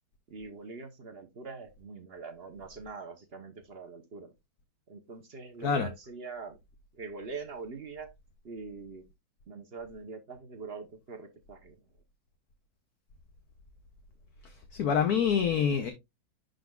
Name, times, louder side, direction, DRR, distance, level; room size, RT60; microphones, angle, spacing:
voice 1, 0.3-4.3 4.9-6.6 6.9-8.1 8.4-9.0 9.5-11.8, right 4 dB, 40° right, 0.9 m, -43 dB
voice 2, 14.7-15.9, left 7 dB, 60° left, 1.2 m, -26 dB
11.5 x 3.9 x 2.3 m
omnidirectional pair, 2.0 m